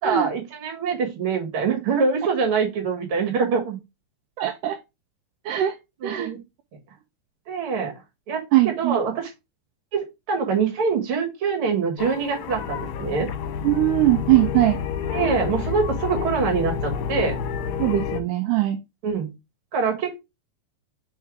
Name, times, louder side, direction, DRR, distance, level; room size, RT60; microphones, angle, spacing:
voice 1, 0.0-3.8 6.0-6.4 7.5-7.9 8.3-9.3 9.9-13.3 15.1-17.4 19.0-19.3 19.7-20.2, right 5 dB, 45° right, 2 dB, 2.1 m, -24 dB
voice 2, 4.4-4.8 5.5-5.7 6.0-6.3 8.5-9.0 13.6-14.8 17.8-18.8, right 16 dB, 80° right, 7 dB, 1.9 m, -20 dB
sound 1, 12.0-18.2, left 7 dB, 70° left, 2.0 m, -29 dB
4.6 x 4.5 x 4.6 m, 0.24 s
omnidirectional pair, 4.1 m